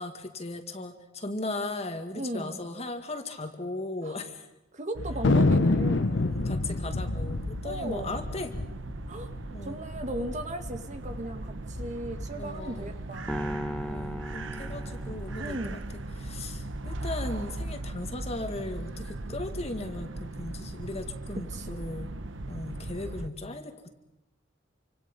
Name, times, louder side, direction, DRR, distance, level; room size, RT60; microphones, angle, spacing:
voice 1, 0.0-4.5 6.1-8.5 9.5-9.8 10.2-10.3 12.4-12.9 13.8-15.8 16.2-22.1 22.5-23.9, left 2 dB, 35° left, 6 dB, 2.2 m, -37 dB
voice 2, 2.1-2.6 4.0-4.2 4.7-6.4 7.6-8.2 9.1-9.3 9.6-13.6 15.4-15.8 21.3-21.9, right 1 dB, 40° right, 6 dB, 2.0 m, -37 dB
sound 1, 4.9-23.3, right 2 dB, 90° right, 1.1 m, -38 dB
Thunder, 5.2-10.1 10.3-10.4 10.6-11.2 11.7-12.9, left 2 dB, 75° left, 0.8 m, -27 dB
sound 2, 13.3-15.7, equal, 5° left, 1.3 m, -36 dB
28.5 x 25.5 x 5.4 m, 0.94 s
head